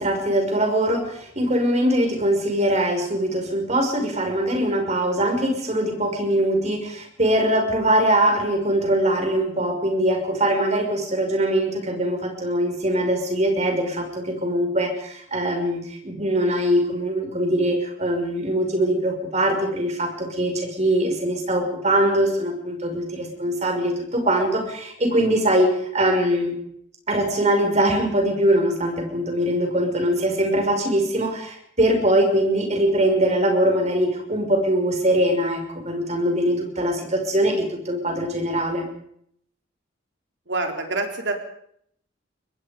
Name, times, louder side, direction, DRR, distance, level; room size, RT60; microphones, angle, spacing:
voice 1, 0.0-26.5 27.1-38.9, right 1 dB, 35° right, 3 dB, 5.6 m, -22 dB
voice 2, 40.5-41.3, right 3 dB, 65° right, 3 dB, 3.9 m, -26 dB
23.5 x 21.5 x 5.2 m, 0.68 s
head